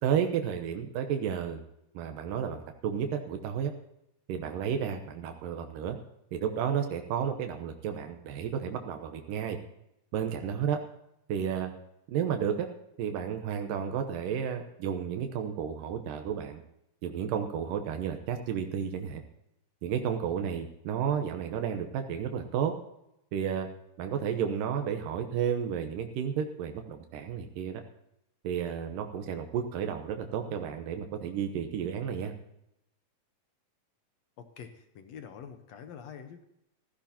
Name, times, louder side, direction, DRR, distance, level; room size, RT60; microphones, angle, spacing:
voice 1, 0.0-1.6 1.9-3.7 4.3-6.0 6.3-9.6 10.1-10.8 11.3-11.7 12.1-12.7 13.0-16.6 17.0-19.2 19.8-22.7 23.3-23.7 24.0-27.8 28.4-32.3, right 8 dB, 85° right, 5 dB, 2.6 m, -32 dB
voice 2, 34.4-36.4, left 7 dB, 65° left, 7 dB, 1.8 m, -46 dB
15.0 x 14.5 x 2.9 m, 0.83 s
omnidirectional pair, 3.9 m